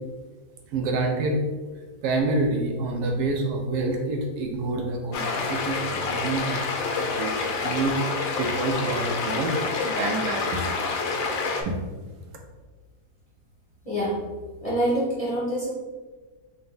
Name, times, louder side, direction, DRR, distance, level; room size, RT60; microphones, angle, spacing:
voice 1, 0.7-1.4 2.0-9.5 9.8-10.7, right 2 dB, 75° right, 2 dB, 1.1 m, -27 dB
sound 1, 5.1-11.6, left 4 dB, 65° left, 0.9 m, -28 dB
voice 2, 13.8-14.2 14.6-15.7, right 1 dB, 25° left, -8 dB, 0.8 m, -25 dB
4.0 x 2.2 x 3.8 m, 1.3 s
omnidirectional pair, 1.7 m